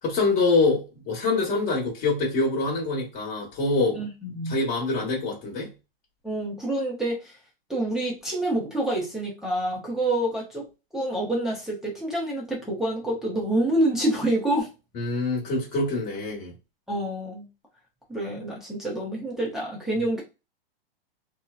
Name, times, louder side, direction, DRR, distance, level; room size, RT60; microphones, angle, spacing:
voice 1, 0.0-4.1 4.4-5.7 14.9-16.5, left 3 dB, 25° left, 1.1 m, -25 dB
voice 2, 3.9-4.6 6.2-7.4 7.7-10.7 10.9-14.7 16.9-17.5 18.1-20.2, right 1 dB, ahead, 0.5 m, -27 dB
2.7 x 2.1 x 2.3 m
hypercardioid pair, 135°, 30 cm